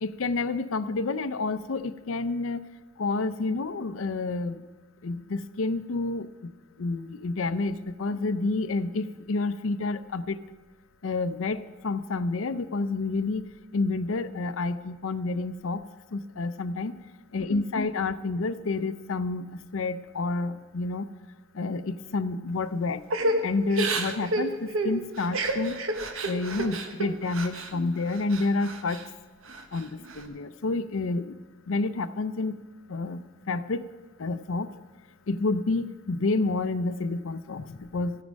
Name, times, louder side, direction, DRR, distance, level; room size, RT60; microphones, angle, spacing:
voice 1, 0.0-2.6 3.0-4.6 5.0-6.3 6.8-10.4 11.0-13.4 13.7-15.8 16.1-16.9 17.3-19.5 19.7-21.0 21.6-23.0 23.4-25.8 26.2-29.0 29.7-31.3 31.7-32.5 32.9-33.8 34.2-34.7 35.3-38.2, left 3 dB, 80° left, 12 dB, 0.5 m, -29 dB
Crying sobbing / Breathing, 23.1-27.7 28.1-29.1 29.5-30.2, right 2 dB, 85° right, 1.1 m, -30 dB
14.0 x 9.6 x 5.2 m, 1.3 s
head